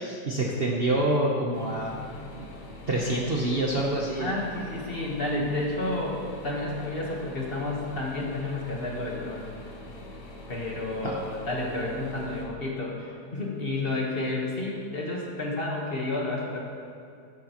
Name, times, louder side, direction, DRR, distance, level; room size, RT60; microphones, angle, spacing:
voice 1, 0.0-1.9 2.4-2.5 2.9-4.4 11.0-11.1, right 1 dB, 45° right, -3 dB, 0.9 m, -26 dB
sound 1, 1.5-12.4, left 1 dB, 70° left, 1.9 m, -44 dB
voice 2, 4.2-9.5 10.5-16.6, left 2 dB, 35° left, -2 dB, 1.5 m, -31 dB
13.5 x 9.0 x 3.0 m, 2.4 s
omnidirectional pair, 1.9 m